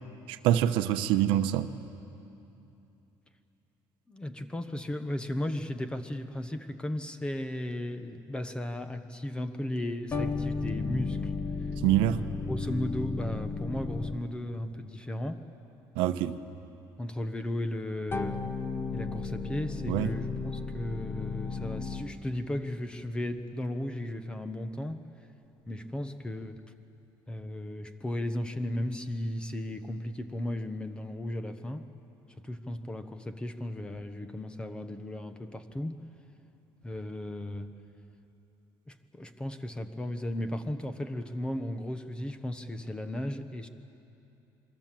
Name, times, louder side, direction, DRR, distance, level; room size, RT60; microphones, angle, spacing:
voice 1, 0.3-1.7 11.8-12.2 16.0-16.4 19.9-20.1, right 12 dB, 90° right, 10 dB, 1.0 m, -25 dB
voice 2, 4.1-11.3 11.6-11.7 12.5-15.5 17.0-18.4 18.9-25.0 25.7-26.6 27.3-31.9 32.3-36.0 36.8-37.7 38.9-43.7, left 1 dB, 10° left, 9 dB, 1.0 m, -35 dB
sound 1, 10.1-14.5 18.1-22.3, left 4 dB, 30° left, 1.2 m, -34 dB
27.5 x 23.0 x 7.6 m, 2.8 s
cardioid pair, 145°, 9 cm